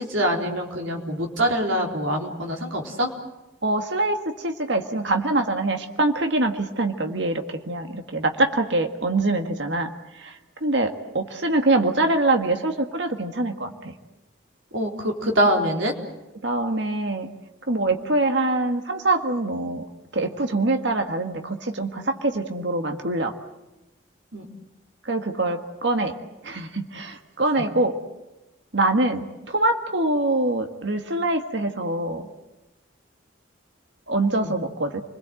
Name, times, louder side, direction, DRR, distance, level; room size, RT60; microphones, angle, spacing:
voice 1, 0.0-3.1 14.7-15.9 24.3-24.5 34.4-34.5, equal, 85° right, 1 dB, 4.0 m, -24 dB
voice 2, 3.6-9.9 10.2-13.7 16.4-17.3 17.7-19.8 20.1-23.3 25.1-26.1 26.4-28.0 28.7-32.3 34.1-35.0, right 2 dB, 65° right, 5 dB, 1.7 m, -24 dB
29.5 x 21.0 x 7.8 m, 1.0 s
head